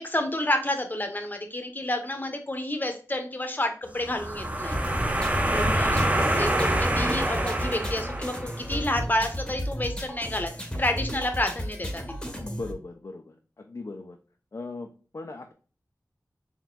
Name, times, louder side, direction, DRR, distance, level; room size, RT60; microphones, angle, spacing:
voice 1, 0.0-4.8 5.5-12.3, left 1 dB, 30° left, 5 dB, 0.9 m, -30 dB
sound 1, 4.0-8.7, right 1 dB, 20° right, 0.6 m, -26 dB
sound 2, 4.7-12.7, equal, 10° left, 1.1 m, -34 dB
voice 2, 12.3-14.2 14.5-15.5, left 3 dB, 50° left, 2 dB, 0.5 m, -39 dB
4.3 x 3.5 x 2.2 m, 0.38 s
wide cardioid pair, 55°, 7 cm